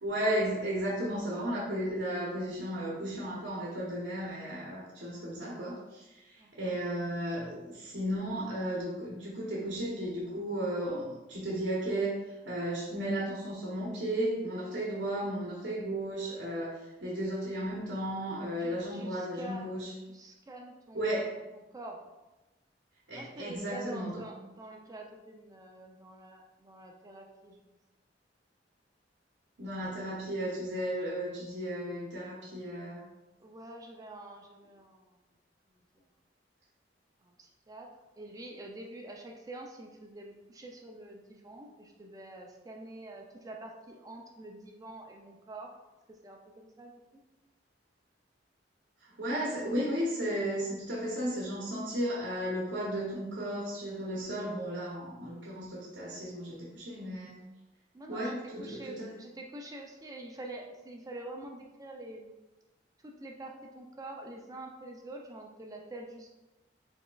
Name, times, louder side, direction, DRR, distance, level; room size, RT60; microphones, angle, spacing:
voice 1, 0.0-12.2 12.4-19.9 20.9-21.3 23.1-24.2 29.6-33.1 49.2-57.4 58.1-59.1, right 1 dB, 90° right, -5 dB, 1.0 m, -34 dB
voice 2, 6.4-6.8 18.6-19.7 20.1-21.1 21.7-22.0 23.1-27.6 33.4-35.2 35.7-36.1 37.2-37.9 38.2-45.8 46.1-47.2 57.9-62.3 63.0-66.3, right 2 dB, 20° right, 1 dB, 0.4 m, -46 dB
4.9 x 3.5 x 2.3 m, 1.1 s
head